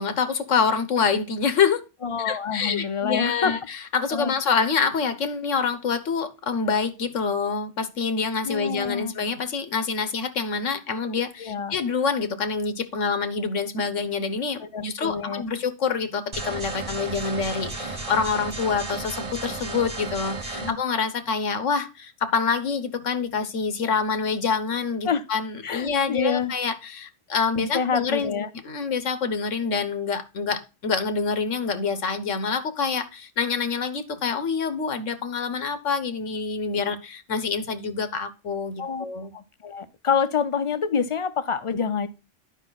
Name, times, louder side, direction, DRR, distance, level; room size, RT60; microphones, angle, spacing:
voice 1, 0.0-1.8 2.2-28.3 28.6-39.3, left 5 dB, 90° left, 1.4 m, -26 dB
voice 2, 2.0-3.5 4.1-4.3 8.4-9.1 11.4-11.8 14.6-15.4 20.6-20.8 25.0-25.2 25.6-26.5 27.6-28.5 38.8-39.0 39.3-42.1, left 6 dB, 40° left, 0.5 m, -27 dB
sound 1, 16.3-20.7, right 3 dB, 30° right, 0.9 m, -33 dB
11.0 x 5.4 x 4.0 m
omnidirectional pair, 1.2 m